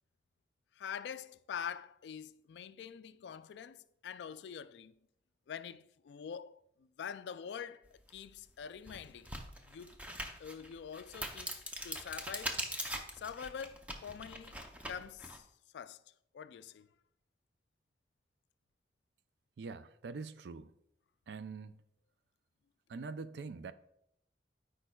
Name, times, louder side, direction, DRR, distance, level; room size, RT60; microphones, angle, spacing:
voice 1, 0.8-4.9 5.5-9.3 9.6-10.0 10.4-12.7 13.1-15.5 15.7-16.0 16.3-16.9, left 7 dB, 75° left, 0.3 m, -45 dB
sound 1, 8.1-8.2 8.8-15.4, right 1 dB, 10° right, 0.6 m, -42 dB
voice 2, 19.6-20.7 21.3-21.8 22.9-23.7, right 4 dB, 70° right, 0.4 m, -44 dB
12.5 x 5.0 x 2.2 m
head